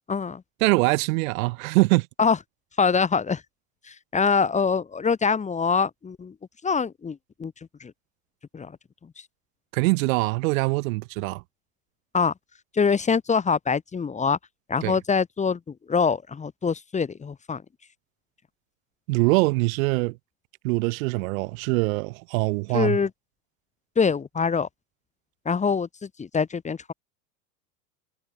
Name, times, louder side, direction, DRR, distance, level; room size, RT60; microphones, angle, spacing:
voice 1, 0.1-0.4 2.2-2.4 2.8-3.4 3.8-6.3 6.6-7.5 7.8-7.9 8.5-8.7 12.1-12.3 12.7-14.4 14.7-15.6 15.9-17.6 22.7-23.1 24.0-24.7 25.4-26.9, left 5 dB, 15° left, 2.5 m, -24 dB
voice 2, 0.6-2.1 9.7-11.4 14.8-15.0 19.1-20.2 20.6-23.0, right 24 dB, 60° right, 5.2 m, -23 dB
supercardioid pair, 135°, 45 cm